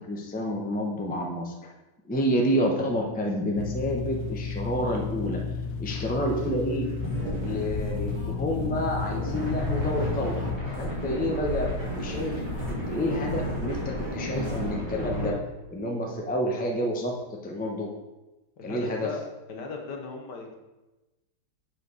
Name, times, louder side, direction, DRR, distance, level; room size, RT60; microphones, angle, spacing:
voice 1, 0.0-1.7 2.1-5.4 5.8-6.9 7.4-10.4 10.8-15.4 15.7-17.9 18.6-19.1, equal, 5° left, 0 dB, 0.8 m, -29 dB
sound 1, 3.6-10.6, left 5 dB, 80° left, 1.4 m, -33 dB
sound 2, 6.3-14.7, right 3 dB, 50° right, 1.9 m, -46 dB
sound 3, 7.0-15.3, equal, 10° right, 3.4 m, -32 dB
voice 2, 18.6-20.6, left 4 dB, 60° left, 2 dB, 1.7 m, -37 dB
7.8 x 5.2 x 6.3 m, 1.1 s
omnidirectional pair, 2.2 m